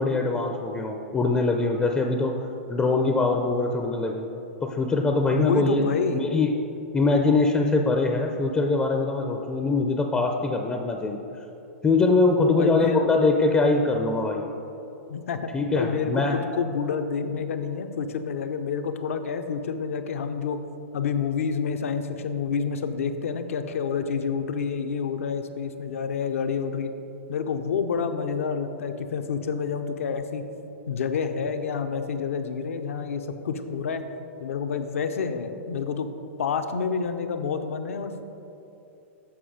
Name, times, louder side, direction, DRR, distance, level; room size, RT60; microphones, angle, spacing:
voice 1, 0.0-4.3 4.6-5.8 6.1-6.5 6.9-11.2 11.8-14.4 15.5-16.4, left 3 dB, 15° left, 3 dB, 0.4 m, -23 dB
voice 2, 5.3-6.3 12.3-13.1 15.1-20.6 20.9-26.9 27.3-30.4 30.9-34.1 34.4-36.1 36.4-38.2, left 6 dB, 75° left, 7 dB, 0.6 m, -28 dB
7.2 x 5.4 x 5.0 m, 2.9 s
hypercardioid pair, 125°, 7 cm